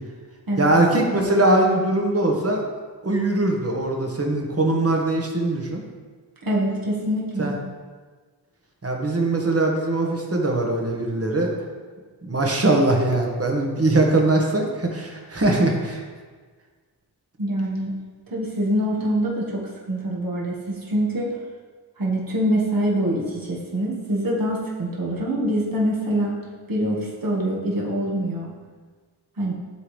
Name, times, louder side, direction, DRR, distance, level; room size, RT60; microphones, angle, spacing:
voice 1, 0.6-2.6 3.0-5.8 7.4-7.5 8.8-11.5 12.2-16.0, right 2 dB, 35° right, 0 dB, 1.3 m, -21 dB
voice 2, 6.4-7.6 17.4-17.9 18.3-21.3 22.0-26.4 26.7-28.5 29.4-29.5, right 1 dB, 55° right, -4 dB, 1.7 m, -24 dB
11.0 x 3.8 x 3.3 m, 1.5 s
wide cardioid pair, 55°, 40 cm